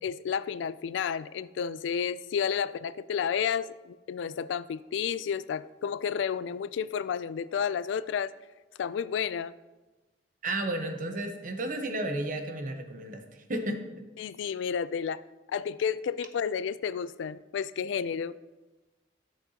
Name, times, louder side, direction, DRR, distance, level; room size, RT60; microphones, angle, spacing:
voice 1, 0.0-8.3 8.8-9.5 14.2-15.2 15.5-18.4, left 7 dB, 80° left, 17 dB, 0.3 m, -31 dB
voice 2, 10.4-13.2 13.5-13.8, right 1 dB, 45° right, 5 dB, 0.9 m, -32 dB
12.5 x 6.8 x 2.8 m, 1.2 s
head